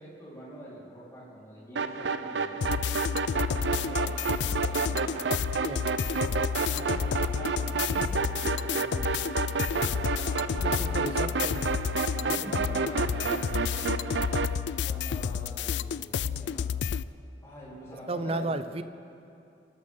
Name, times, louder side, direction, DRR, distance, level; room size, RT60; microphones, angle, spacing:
voice 1, 0.0-2.7 3.5-5.1 6.6-9.1 9.7-11.3 12.3-13.7 14.7-16.8 17.4-18.6, equal, 15° left, -9 dB, 4.3 m, -45 dB
sound 1, 1.8-14.6, right 4 dB, 85° right, 0.6 m, -31 dB
sound 2, 2.6-17.0, left 7 dB, 75° left, 0.3 m, -31 dB
voice 2, 10.6-11.6 12.1-13.3 18.1-18.8, right 2 dB, 35° right, 11 dB, 0.6 m, -35 dB
28.5 x 12.5 x 3.8 m, 2.7 s
head